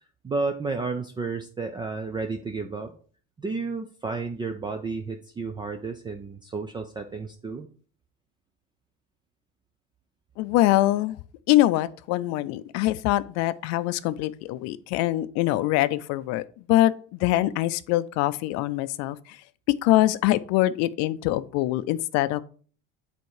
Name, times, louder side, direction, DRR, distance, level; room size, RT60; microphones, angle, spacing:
voice 1, 0.2-2.9 3.4-7.7, right 4 dB, 15° right, 0.5 m, -32 dB
voice 2, 10.4-11.2 11.5-16.4 16.7-19.4 19.7-22.4, left 16 dB, 65° left, 0.5 m, -23 dB
6.9 x 4.4 x 4.8 m
cardioid pair, 130°, 29 cm